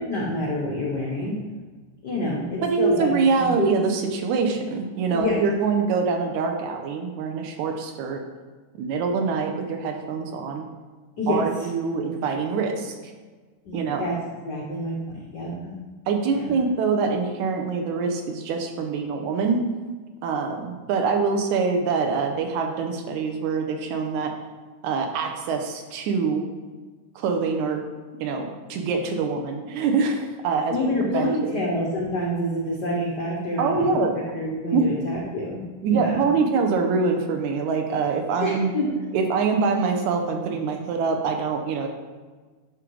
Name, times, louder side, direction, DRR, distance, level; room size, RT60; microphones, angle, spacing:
voice 1, 0.0-1.4 2.0-3.1 3.4-3.7 5.1-5.4 11.2-11.7 13.6-14.2 14.4-15.7 16.3-16.5 30.7-33.9 34.3-35.6 35.9-36.3 38.4-39.0, left 1 dB, 85° left, -3 dB, 0.9 m, -27 dB
voice 2, 2.6-8.2 8.7-10.7 11.3-13.1 13.7-14.2 16.1-19.7 20.2-24.3 24.8-26.5 27.2-27.8 28.2-30.8 31.1-31.6 33.6-34.2 34.7-34.9 35.8-38.7 39.1-41.9, right 4 dB, 75° right, 4 dB, 2.2 m, -24 dB
10.5 x 3.8 x 4.7 m, 1.4 s
omnidirectional pair, 3.5 m